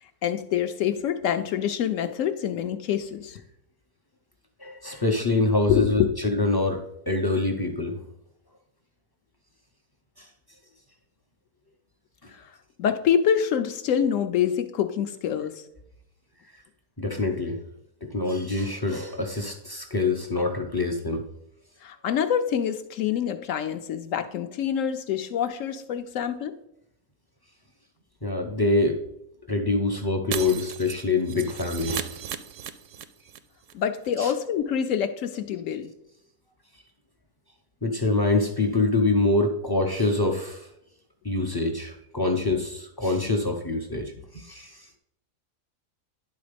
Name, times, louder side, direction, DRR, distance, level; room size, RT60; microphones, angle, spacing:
voice 1, 0.0-3.4 5.7-6.1 12.3-15.7 21.8-26.5 33.7-35.9, left 8 dB, 70° left, 8 dB, 0.8 m, -26 dB
voice 2, 4.6-6.8 7.1-8.0 10.2-10.3 12.2-12.3 17.0-17.6 18.0-21.2 28.2-29.0 29.5-32.2 34.2-34.3 37.8-40.7 41.2-44.9, left 2 dB, 40° left, 3 dB, 0.3 m, -25 dB
Shatter, 30.3-33.4 33.6-33.7 34.0-34.1, right 9 dB, 70° right, 0.8 m, -35 dB
10.5 x 4.0 x 5.1 m, 0.80 s
omnidirectional pair, 1.6 m